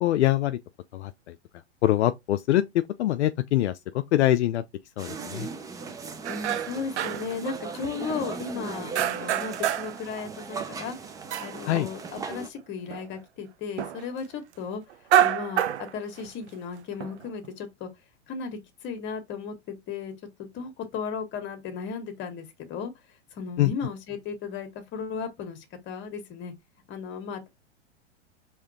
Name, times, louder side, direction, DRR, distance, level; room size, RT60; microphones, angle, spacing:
voice 1, 0.0-0.6 0.9-1.4 1.8-4.6 5.0-5.5 11.7-11.9 23.6-23.7, left 14 dB, 75° left, 0.5 m, -24 dB
sound 1, 5.0-12.5, right 5 dB, 10° right, 0.5 m, -38 dB
sound 2, 6.2-7.4 7.8-8.5 8.9-10.0 10.3-12.2 12.6-12.7 12.9-13.1 13.8-14.0 14.9-16.5 17.0-17.5, right 11 dB, 75° right, 0.7 m, -27 dB
voice 2, 6.3-11.0 11.4-14.8 15.2-17.9 18.3-20.1 20.5-22.9 23.3-26.5 26.9-27.5, left 6 dB, 35° left, 1.5 m, -35 dB
4.9 x 3.1 x 2.8 m
hypercardioid pair, 125°, 34 cm